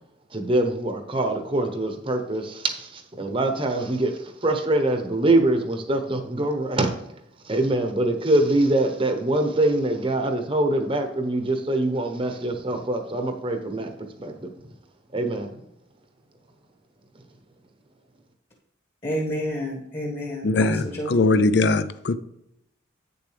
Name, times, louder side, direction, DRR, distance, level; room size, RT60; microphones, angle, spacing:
voice 1, 0.3-7.0 7.4-13.9 14.2-14.5 15.1-15.5, right 2 dB, 25° right, 0.9 m, -24 dB
voice 2, 19.0-21.1, equal, 30° left, 1.5 m, -30 dB
voice 3, 20.4-22.2, left 3 dB, 60° left, 0.5 m, -21 dB
8.9 x 6.9 x 3.3 m
head